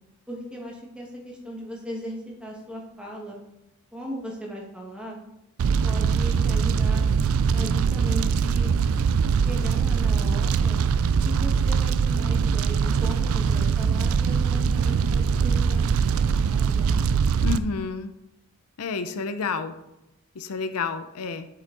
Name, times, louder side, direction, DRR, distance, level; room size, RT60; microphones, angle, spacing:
voice 1, 0.3-3.4 3.9-5.2 5.8-7.0 7.5-8.7 9.3-10.8 11.2-16.9, equal, 5° right, -2 dB, 1.4 m, -37 dB
Fire, 5.6-17.6, right 6 dB, 70° right, 0.3 m, -22 dB
voice 2, 17.4-18.1 18.8-19.7 20.3-21.5, left 5 dB, 85° left, 10 dB, 0.6 m, -30 dB
8.1 x 5.8 x 3.8 m, 0.88 s
head